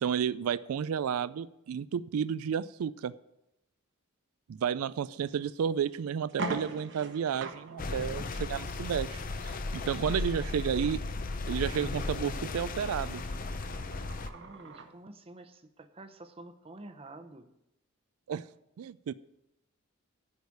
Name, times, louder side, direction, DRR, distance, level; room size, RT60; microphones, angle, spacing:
voice 1, 0.0-3.1 4.5-11.0 11.5-13.2 18.3-18.4 18.8-19.1, right 8 dB, 90° right, 17 dB, 0.4 m, -32 dB
sound 1, 5.3-5.4 5.9-6.0 6.3-14.9, right 2 dB, 55° right, 1.0 m, -44 dB
sound 2, 7.8-14.3, left 3 dB, 40° left, 0.6 m, -35 dB
voice 2, 9.9-10.5 14.3-17.5, right 2 dB, 25° right, 8 dB, 0.7 m, -49 dB
10.5 x 4.9 x 8.2 m, 0.88 s
head